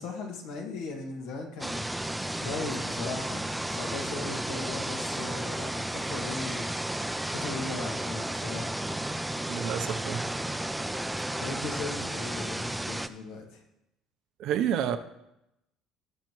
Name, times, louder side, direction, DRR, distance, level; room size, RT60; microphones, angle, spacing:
voice 1, 0.0-1.9 2.4-6.7 7.3-8.9 11.4-13.6, left 3 dB, 85° left, 1 dB, 1.9 m, -38 dB
sound 1, 1.6-13.1, right 1 dB, 5° right, 0.4 m, -33 dB
voice 2, 9.5-10.3 14.4-15.0, right 9 dB, 65° right, 10 dB, 0.6 m, -29 dB
17.5 x 6.5 x 3.1 m, 0.87 s
cardioid pair, 120°, 0 cm